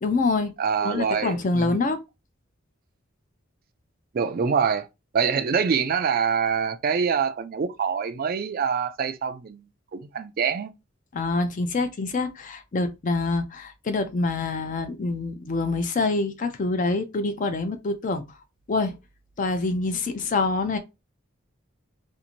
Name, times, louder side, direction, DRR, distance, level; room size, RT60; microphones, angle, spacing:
voice 1, 0.0-0.5 0.8-2.0 11.1-18.2 18.7-19.0 19.4-20.8, left 3 dB, 40° left, 0.5 m, -26 dB
voice 2, 0.6-1.8 4.1-4.9 5.1-9.7 9.9-10.7, right 6 dB, 45° right, 0.3 m, -25 dB
2.6 x 2.5 x 2.8 m
head